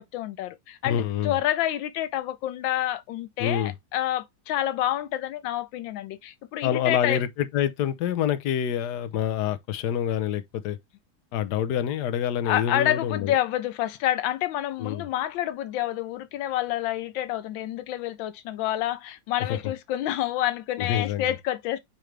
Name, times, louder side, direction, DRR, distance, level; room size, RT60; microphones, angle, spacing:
voice 1, 0.0-7.2 12.4-21.8, left 12 dB, 90° left, 1.4 m, -28 dB
voice 2, 0.8-1.4 3.4-3.7 6.6-10.8 11.3-13.3 14.8-15.1 19.4-19.7 20.8-21.3, left 9 dB, 65° left, 1.3 m, -27 dB
8.7 x 3.2 x 3.3 m
omnidirectional pair, 2.0 m